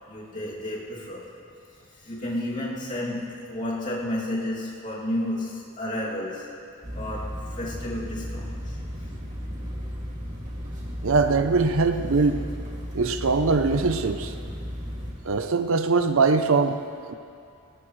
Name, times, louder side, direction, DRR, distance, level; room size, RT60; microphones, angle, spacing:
voice 1, 0.1-1.3 1.9-6.5 6.9-8.8, left 1 dB, 35° left, -6 dB, 2.7 m, -32 dB
sound 1, 6.8-15.1, equal, 35° right, 2.3 m, -35 dB
voice 2, 11.0-12.4 12.9-14.3 15.2-17.1, right 4 dB, 60° right, 8 dB, 0.6 m, -22 dB
19.5 x 18.0 x 3.2 m, 2.4 s
head